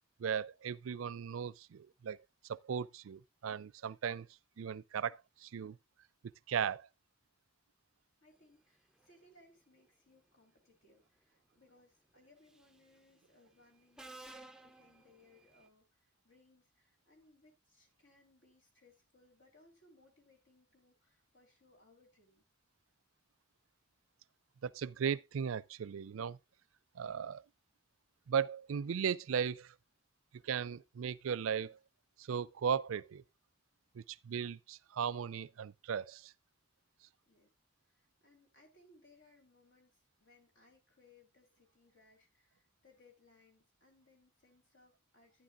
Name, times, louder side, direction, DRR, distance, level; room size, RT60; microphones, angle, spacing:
voice 1, 0.2-2.2 2.5-4.3 4.6-5.8 6.5-6.9 24.6-26.4 27.0-27.4 28.3-29.7 30.4-31.8 32.2-33.2 34.0-36.3, right 7 dB, 75° right, 0.4 m, -37 dB
voice 2, 8.2-22.5 37.3-37.5 37.8-45.4, left 2 dB, 65° left, 3.5 m, -67 dB
Subway metro underground, 12.5-12.8 14.0-15.7, right 2 dB, 5° right, 0.4 m, -54 dB
11.5 x 9.8 x 2.5 m
head